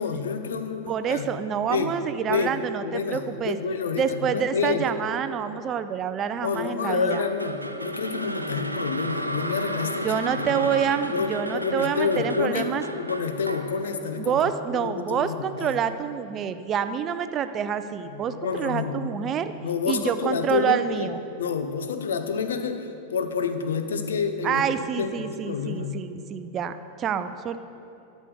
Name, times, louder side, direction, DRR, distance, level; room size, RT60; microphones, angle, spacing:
voice 1, 0.0-1.3 1.7-2.0 2.3-4.9 6.4-10.7 11.1-12.7 13.0-15.8 18.1-19.0 19.6-21.1 21.4-24.6 25.0-26.0, left 5 dB, 65° left, 8 dB, 0.8 m, -29 dB
voice 2, 0.9-3.6 4.0-7.2 10.0-12.8 14.2-19.5 19.9-21.2 24.4-27.6, right 8 dB, 30° right, 11 dB, 0.5 m, -27 dB
sound 1, 7.1-15.3, right 1 dB, 85° right, 0.5 m, -33 dB
12.0 x 6.3 x 6.8 m, 2.8 s
figure-of-eight pair, 90°, 0 cm